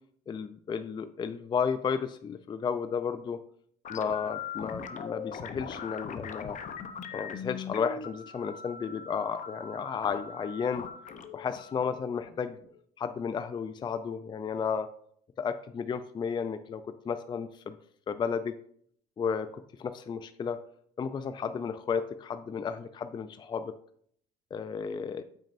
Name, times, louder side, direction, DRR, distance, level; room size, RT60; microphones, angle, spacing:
voice 1, 0.3-3.4 3.9-6.6 7.1-10.8 11.3-12.6 13.0-14.9 15.4-17.8 18.1-18.5 19.2-19.5 19.8-20.6 21.0-23.7 24.5-25.2, left 6 dB, 25° left, 11 dB, 0.4 m, -33 dB
sound 1, 3.8-12.8, left 6 dB, 45° left, 0.7 m, -41 dB
8.5 x 6.3 x 2.5 m, 0.63 s
cardioid pair, 110°, 17 cm